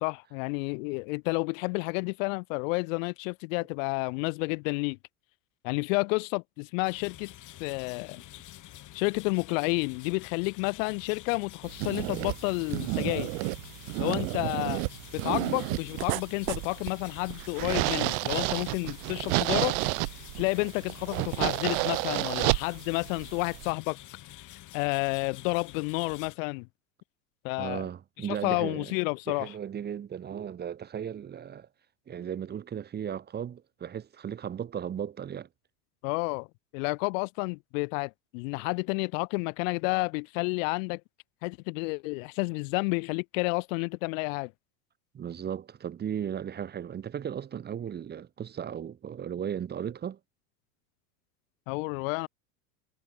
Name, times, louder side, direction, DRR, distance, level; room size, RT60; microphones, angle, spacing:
voice 1, 0.0-5.0 5.6-7.3 7.6-8.2 8.9-13.3 14.0-14.9 15.1-19.8 20.4-24.0 24.7-26.7 27.4-27.9 28.3-29.5 36.0-36.5 36.7-41.0 41.4-44.5 51.7-52.3, left 31 dB, 60° left, 0.7 m, -30 dB
sound 1, 6.9-26.4, left 15 dB, 40° left, 3.4 m, -48 dB
sound 2, 11.6-23.7, right 31 dB, 60° right, 1.0 m, -31 dB
voice 2, 27.6-28.9 29.3-31.7 32.1-35.5 45.1-50.2, right 8 dB, 20° right, 1.2 m, -36 dB
supercardioid pair, 130°, 46 cm